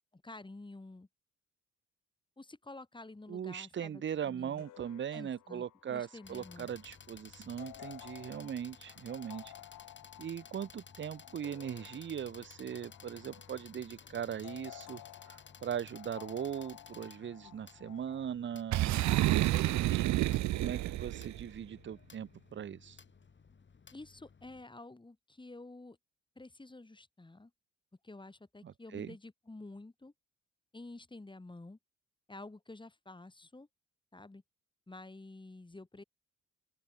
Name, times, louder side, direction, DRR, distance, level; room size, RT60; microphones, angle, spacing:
voice 1, 0.1-1.1 2.4-4.6 5.1-6.7 23.9-26.0 26.4-27.5 28.0-30.1 30.7-31.8 32.3-33.7 34.1-34.4 34.9-36.0, left 2 dB, 15° left, 5.9 m, -50 dB
voice 2, 3.3-9.5 10.2-20.0 20.5-23.0 28.6-29.1, right 8 dB, 40° right, 0.8 m, -40 dB
sound 1, 4.6-18.3, left 15 dB, 85° left, 1.9 m, -54 dB
sound 2, 6.2-24.7, left 5 dB, 40° left, 7.8 m, -56 dB
Boom, 18.7-21.4, right 15 dB, 65° right, 0.6 m, -29 dB
open air
cardioid pair, 90°, 30 cm